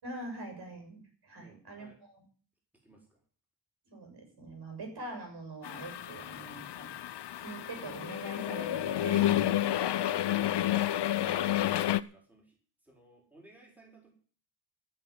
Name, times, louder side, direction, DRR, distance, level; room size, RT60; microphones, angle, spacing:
voice 1, 0.0-2.2 3.9-9.8 11.2-11.4, right 2 dB, 55° right, 3 dB, 7.0 m, -44 dB
voice 2, 1.4-2.0 2.8-3.2 6.1-6.3 9.4-10.5 10.9-14.1, right 1 dB, 5° right, -1 dB, 4.6 m, -57 dB
sound 1, 5.6-12.0, left 13 dB, 60° left, 0.7 m, -30 dB
14.5 x 6.7 x 9.5 m, 0.43 s
wide cardioid pair, 135°, 46 cm